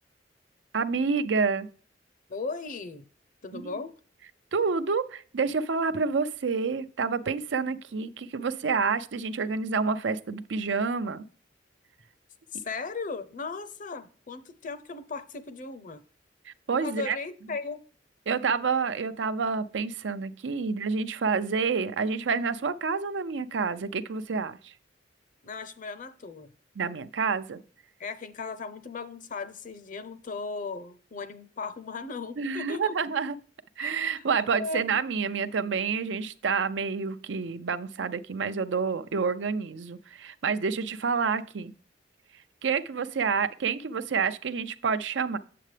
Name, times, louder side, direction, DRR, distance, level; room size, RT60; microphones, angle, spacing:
voice 1, 0.7-1.7 3.5-3.8 4.5-11.2 16.5-17.2 18.3-24.7 26.8-27.6 32.4-33.4 33.8-41.7 42.6-45.4, right 5 dB, 80° right, 0.5 m, -28 dB
voice 2, 2.3-3.0 3.4-3.9 12.5-16.0 16.8-17.8 25.4-26.5 28.0-32.9 33.8-34.2 34.6-35.0, left 4 dB, 45° left, 0.6 m, -37 dB
7.7 x 7.5 x 3.3 m
head